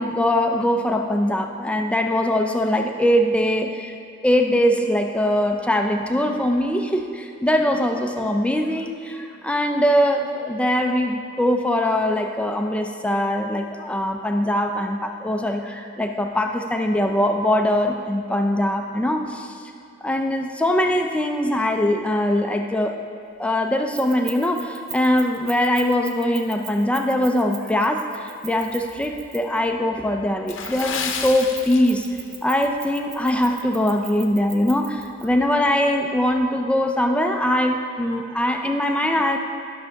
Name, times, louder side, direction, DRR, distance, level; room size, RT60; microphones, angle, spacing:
voice 1, 0.0-3.9 4.2-19.6 20.0-22.9 23.4-32.1 32.4-39.4, left 1 dB, 5° left, 4 dB, 0.4 m, -22 dB
Keys jangling, 23.9-29.7 30.5-35.3, right 7 dB, 35° right, 0.8 m, -39 dB
Water / Splash splatter, 30.4-32.3 32.6-32.9 33.5-33.7 34.1-34.2, left 6 dB, 70° left, 0.7 m, -31 dB
12.5 x 6.2 x 3.4 m, 2.4 s
head